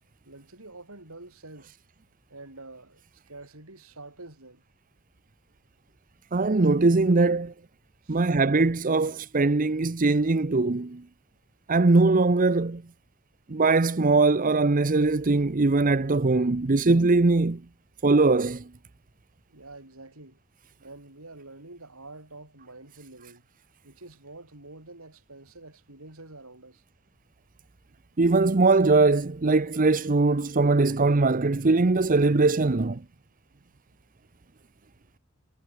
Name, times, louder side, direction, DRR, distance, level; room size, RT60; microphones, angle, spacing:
voice 1, 0.2-1.8 2.3-4.6 8.0-8.3 19.5-20.4 20.8-23.4 23.8-26.8, right 2 dB, 80° right, 5.3 m, -47 dB
voice 2, 6.3-7.5 8.1-11.0 11.7-12.8 13.5-17.6 18.0-18.7 28.2-33.0, right 3 dB, 40° right, 0.7 m, -21 dB
head